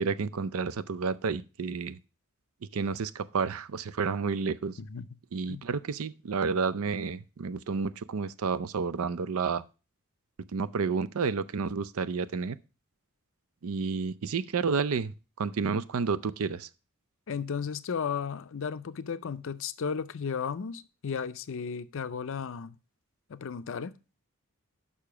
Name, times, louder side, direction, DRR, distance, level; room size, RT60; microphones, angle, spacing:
voice 1, 0.0-2.0 2.7-4.8 5.3-9.6 10.5-12.6 13.6-15.1 15.4-16.7, right 5 dB, 70° right, 0.5 m, -30 dB
voice 2, 17.3-22.8 23.3-23.9, left 6 dB, 60° left, 0.5 m, -34 dB
6.7 x 5.6 x 5.9 m
head